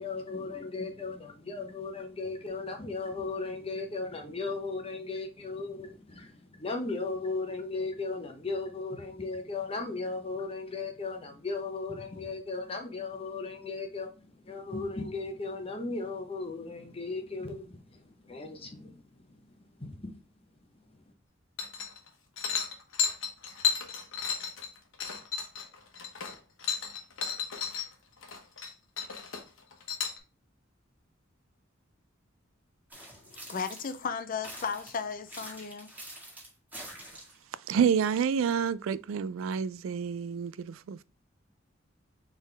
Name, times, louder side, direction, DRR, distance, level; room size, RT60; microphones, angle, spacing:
voice 1, 0.0-19.3 19.8-20.2, left 3 dB, 30° left, 0.9 m, -36 dB
sound 1, 21.6-22.1 22.4-27.8 28.2-28.7 29.0-30.2, left 6 dB, 75° left, 1.1 m, -33 dB
sound 2, 32.9-34.1 34.4-37.4, right 1 dB, 10° right, 1.6 m, -46 dB
voice 2, 33.1-35.9, left 6 dB, 45° left, 0.5 m, -35 dB
voice 3, 37.7-41.0, right 7 dB, 80° right, 0.3 m, -28 dB
4.3 x 3.6 x 3.3 m
head